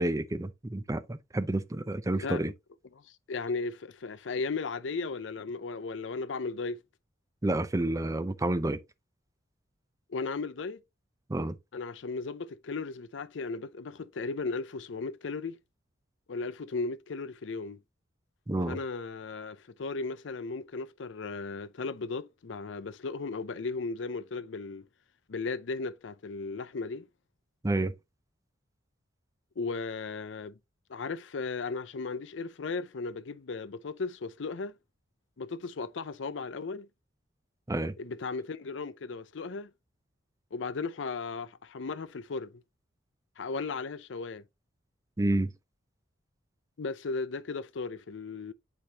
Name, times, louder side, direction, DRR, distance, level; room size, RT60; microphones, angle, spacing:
voice 1, 0.0-2.5 7.4-8.8 11.3-11.6 18.5-18.8 27.6-27.9 37.7-37.9 45.2-45.5, right 1 dB, 15° right, 0.5 m, -29 dB
voice 2, 3.3-6.8 10.1-10.8 11.7-15.6 16.3-17.8 18.7-24.8 25.3-27.1 29.6-30.5 30.9-34.7 35.4-36.9 38.0-39.7 40.5-42.5 43.4-44.4 46.8-48.5, left 4 dB, 75° left, 0.5 m, -36 dB
8.5 x 4.5 x 2.8 m
head